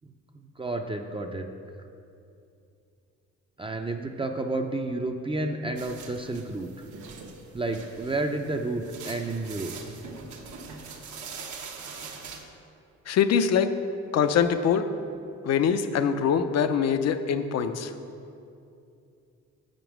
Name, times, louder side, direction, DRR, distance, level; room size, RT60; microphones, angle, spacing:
voice 1, 0.3-1.5 3.6-6.7 7.5-9.8, right 2 dB, 20° right, 4 dB, 0.4 m, -31 dB
sound 1, 5.8-12.4, right 5 dB, 75° right, 0.9 m, -43 dB
voice 2, 13.1-13.7 14.1-14.9 15.4-17.9, left 7 dB, 55° left, 10 dB, 0.5 m, -23 dB
7.0 x 5.2 x 6.0 m, 2.6 s
cardioid pair, 90°, 30 cm